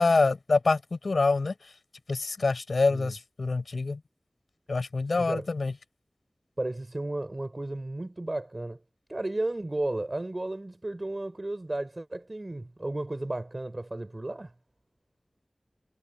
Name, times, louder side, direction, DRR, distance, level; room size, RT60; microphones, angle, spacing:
voice 1, 0.0-1.5 2.1-4.0 4.7-5.7, left 3 dB, 90° left, 5.9 m, -25 dB
voice 2, 5.2-5.5 6.6-8.8 9.1-14.5, right 2 dB, 40° right, 4.8 m, -33 dB
wide cardioid pair, 45°, 0 cm